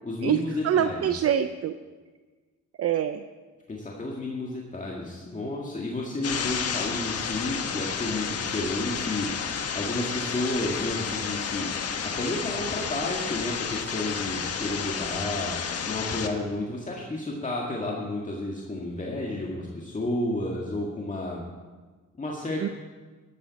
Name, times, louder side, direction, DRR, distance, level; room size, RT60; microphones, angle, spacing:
voice 1, 0.0-1.1 3.7-11.7 12.0-15.6 15.9-21.4 22.1-22.7, left 2 dB, 25° left, -3 dB, 1.9 m, -31 dB
voice 2, 0.6-1.7 2.8-3.2 22.6-22.7, right 9 dB, 50° right, 10 dB, 0.5 m, -24 dB
sound 1, 6.2-16.3, left 6 dB, 55° left, 1.3 m, -31 dB
13.5 x 13.0 x 4.2 m, 1.4 s
cardioid pair, 90°, 30 cm